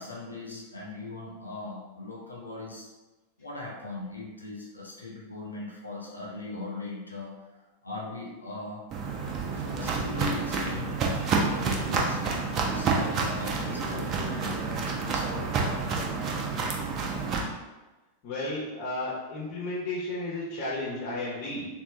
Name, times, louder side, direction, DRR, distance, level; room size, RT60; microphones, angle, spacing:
voice 1, 0.0-2.9 3.4-8.9 9.5-15.6, left 3 dB, 80° left, -3 dB, 0.7 m, -39 dB
Walk footsteps, 8.9-17.4, right 4 dB, 35° right, 0.6 m, -29 dB
voice 2, 18.2-21.7, left 2 dB, 45° left, -5 dB, 0.9 m, -33 dB
3.4 x 2.5 x 3.3 m, 1.1 s
figure-of-eight pair, 90°, 0 cm